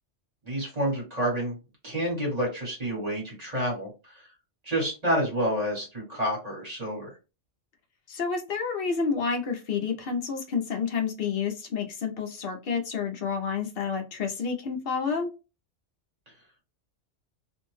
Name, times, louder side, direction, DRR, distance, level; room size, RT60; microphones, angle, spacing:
voice 1, 0.4-1.6 1.8-4.2 4.6-7.1, equal, 35° right, -2 dB, 1.3 m, -29 dB
voice 2, 8.1-15.3, left 5 dB, 55° left, 3 dB, 0.8 m, -29 dB
2.6 x 2.1 x 3.1 m, 0.30 s
omnidirectional pair, 1.3 m